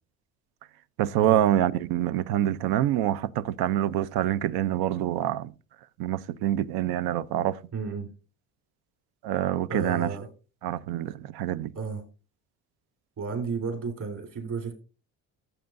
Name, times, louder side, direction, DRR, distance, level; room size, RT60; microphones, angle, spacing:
voice 1, 1.0-5.5 6.0-7.6 9.2-10.1 10.6-11.7, right 12 dB, 85° right, 0.6 m, -26 dB
voice 2, 7.7-8.1 9.7-10.3 11.7-12.0 13.2-14.8, right 5 dB, 55° right, 3.9 m, -32 dB
15.0 x 8.0 x 2.5 m
cardioid pair, 100°, 37 cm